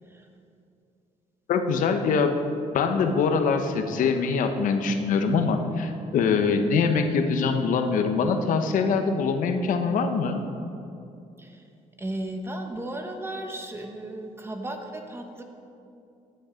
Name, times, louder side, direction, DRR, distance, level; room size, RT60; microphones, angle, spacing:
voice 1, 1.5-2.3 2.7-10.4, left 5 dB, 75° left, 7 dB, 1.0 m, -23 dB
voice 2, 12.0-15.4, right 1 dB, 15° right, 4 dB, 1.2 m, -35 dB
14.5 x 9.2 x 5.1 m, 2.7 s
cardioid pair, 130°, 14 cm